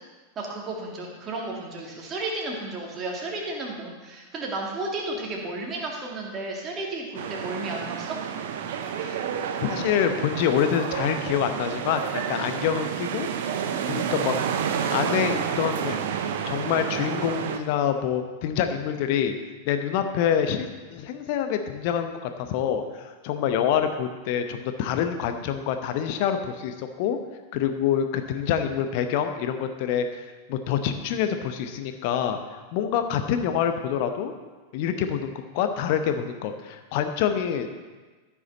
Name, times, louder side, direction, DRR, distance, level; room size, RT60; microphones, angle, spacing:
voice 1, 0.4-8.2, right 2 dB, 25° right, -1 dB, 2.3 m, -33 dB
sound 1, 7.1-17.6, right 8 dB, 55° right, 0.7 m, -30 dB
voice 2, 9.6-13.3 13.9-14.4 14.7-16.0 16.5-19.3 19.7-27.2 27.5-34.3 34.7-37.8, left 8 dB, 45° left, 7 dB, 0.9 m, -26 dB
14.5 x 6.1 x 4.0 m, 1.3 s
figure-of-eight pair, 90°, 0 cm